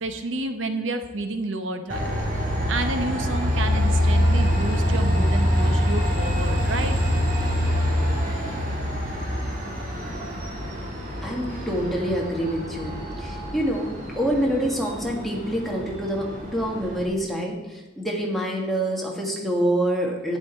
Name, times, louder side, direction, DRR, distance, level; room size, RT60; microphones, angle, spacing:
voice 1, 0.0-2.2 2.7-7.0, right 2 dB, 85° right, 8 dB, 0.9 m, -30 dB
Train, 1.9-17.0, equal, 45° right, 2.6 m, -25 dB
voice 2, 11.2-20.4, right 1 dB, ahead, -2 dB, 1.6 m, -26 dB
11.0 x 9.3 x 4.4 m, 1.1 s
head